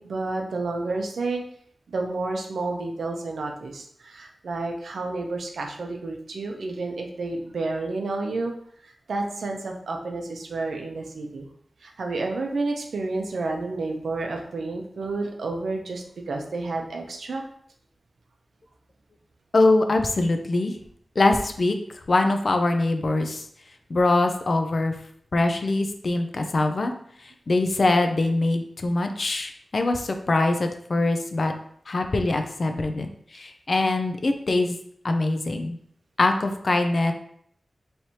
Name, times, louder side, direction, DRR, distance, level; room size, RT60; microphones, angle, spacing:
voice 1, 0.0-1.4 1.9-8.5 8.8-11.5 11.8-17.4, right 3 dB, 90° right, 2 dB, 0.7 m, -30 dB
voice 2, 19.5-20.7 21.2-21.8 22.1-23.5 23.9-24.9 25.3-26.9 27.5-31.5 31.9-34.8 35.0-35.8 36.2-37.1, left 2 dB, 60° left, 5 dB, 0.5 m, -23 dB
4.4 x 3.2 x 2.8 m, 0.65 s
cardioid pair, 55°, 0 cm